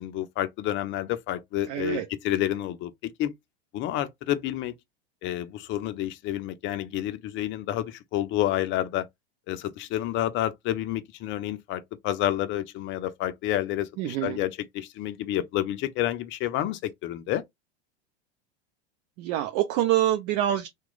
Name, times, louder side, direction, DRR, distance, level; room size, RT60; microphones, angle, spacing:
voice 1, 0.0-3.3 3.7-4.7 5.2-9.1 9.5-17.4, left 13 dB, 35° left, 0.6 m, -29 dB
voice 2, 1.7-2.0 14.0-14.4 19.2-20.7, right 13 dB, 45° right, 0.6 m, -25 dB
3.0 x 2.3 x 3.8 m
hypercardioid pair, 100°, 33 cm